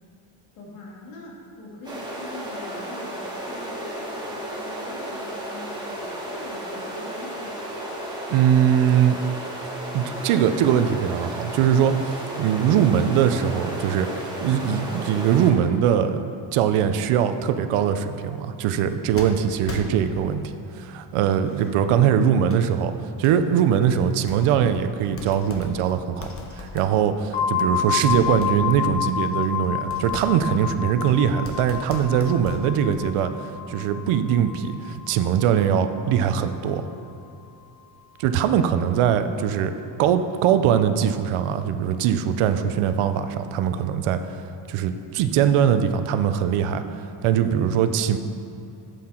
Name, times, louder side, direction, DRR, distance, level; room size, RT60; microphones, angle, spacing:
voice 1, 0.5-7.6, left 2 dB, 85° left, -4 dB, 2.8 m, -43 dB
sound 1, 1.8-15.5, right 1 dB, 10° right, 2.3 m, -33 dB
voice 2, 8.3-9.2 9.9-36.9 38.2-39.7 40.0-44.4 44.7-48.2, right 8 dB, 85° right, 9 dB, 0.8 m, -22 dB
sound 2, 19.2-20.4 21.1-21.8 22.4-22.6 23.2-23.3 23.9-24.8 25.0-27.7 28.1-33.0, left 2 dB, 25° left, 1.3 m, -40 dB
sound 3, 27.3-37.0, left 8 dB, 65° left, 1.3 m, -30 dB
11.5 x 8.3 x 4.4 m, 2.7 s
cardioid pair, 90°, 50 cm